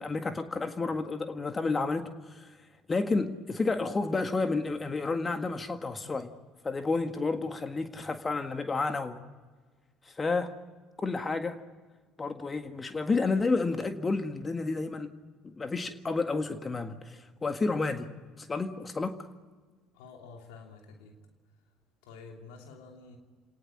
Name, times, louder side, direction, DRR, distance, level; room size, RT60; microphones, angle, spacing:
voice 1, 0.0-2.5 2.9-6.3 6.6-9.2 10.1-10.5 11.0-11.6 12.2-15.1 15.4-18.1 18.4-19.3, left 3 dB, 25° left, 8 dB, 1.8 m, -31 dB
voice 2, 19.9-21.2 22.0-23.2, left 4 dB, 70° left, 2 dB, 3.0 m, -49 dB
28.5 x 19.0 x 9.5 m, 1.4 s
figure-of-eight pair, 60°, 0 cm